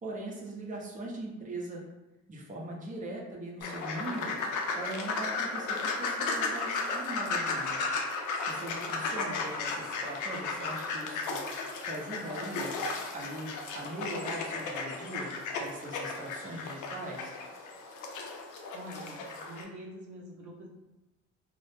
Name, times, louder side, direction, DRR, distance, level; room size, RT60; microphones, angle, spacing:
voice 1, 0.0-1.8 2.3-4.4 4.7-7.8 8.5-11.4 11.8-12.7 13.1-17.3, right 1 dB, 25° right, -2 dB, 0.6 m, -40 dB
sound 1, 3.6-19.6, left 3 dB, 85° left, 0.5 m, -35 dB
voice 2, 18.7-20.7, equal, 80° right, -1 dB, 0.6 m, -45 dB
2.1 x 2.0 x 3.0 m, 1.0 s
cardioid pair, 90°, 30 cm